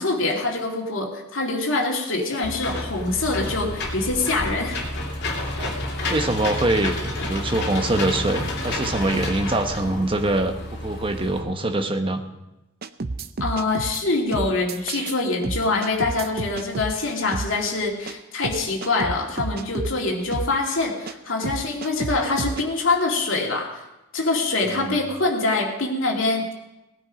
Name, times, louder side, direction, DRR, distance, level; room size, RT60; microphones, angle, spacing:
voice 1, 0.0-4.8 13.4-23.7 24.1-26.5, left 3 dB, 70° left, 0 dB, 2.4 m, -24 dB
Engine / Mechanisms, 2.4-11.4, left 1 dB, 50° left, 2.7 m, -30 dB
voice 2, 6.1-12.2 24.8-25.0, right 2 dB, 25° right, 6 dB, 1.0 m, -24 dB
sound 1, 12.8-14.0 14.3-15.2 15.4-16.9 17.3-17.5 18.1-18.2 18.4-20.0 20.3-20.5 21.1-21.2 21.4-22.6, right 3 dB, 45° right, 0.5 m, -30 dB
18.5 x 10.0 x 5.1 m, 0.97 s
head